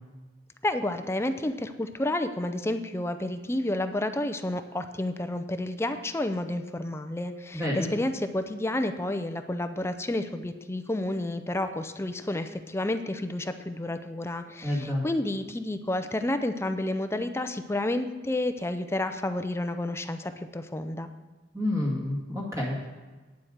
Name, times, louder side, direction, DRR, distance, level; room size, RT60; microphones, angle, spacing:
voice 1, 0.6-21.1, left 1 dB, 15° left, 9 dB, 0.5 m, -30 dB
voice 2, 7.5-7.9 14.6-15.1 21.5-22.8, left 1 dB, 15° right, -4 dB, 2.1 m, -29 dB
9.4 x 7.5 x 6.4 m, 1.3 s
head